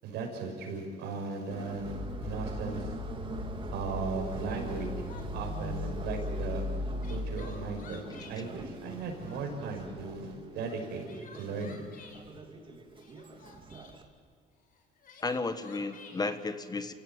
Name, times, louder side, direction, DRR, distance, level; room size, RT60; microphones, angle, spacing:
voice 1, 0.0-2.9 3.7-4.9 5.3-6.6 7.1-8.0 8.3-11.1 11.3-11.9, right 4 dB, 85° right, 1 dB, 6.1 m, -37 dB
Subway metro underground, 1.5-14.0, right 3 dB, 30° right, 2.6 m, -44 dB
sound 1, 1.7-7.5, left 2 dB, 80° left, 3.3 m, -37 dB
Crying sobbing, 4.0-4.1 4.4-5.5 6.7-8.4 8.9-9.7 10.7-12.2 12.9-14.0 14.7-16.3, left 5 dB, 55° left, 4.3 m, -53 dB
voice 2, 15.2-16.9, left 3 dB, 25° left, 10 dB, 1.4 m, -33 dB
29.0 x 16.5 x 8.8 m, 2.3 s
cardioid pair, 110°, 17 cm